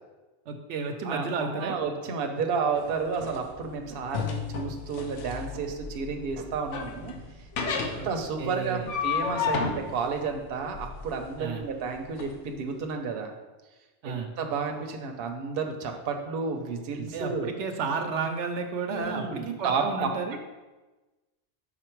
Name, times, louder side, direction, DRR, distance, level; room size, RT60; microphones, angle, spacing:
voice 1, 0.5-1.8 7.9-8.1 8.4-8.8 11.4-11.6 14.0-14.3 17.0-20.4, right 4 dB, 80° right, 6 dB, 0.9 m, -32 dB
voice 2, 1.0-7.2 7.7-13.3 14.0-17.6 18.9-20.1, right 5 dB, 60° right, 4 dB, 0.8 m, -31 dB
sound 1, 2.8-12.3, left 6 dB, 80° left, 1.0 m, -33 dB
5.9 x 4.2 x 4.5 m, 1.2 s
omnidirectional pair, 1.2 m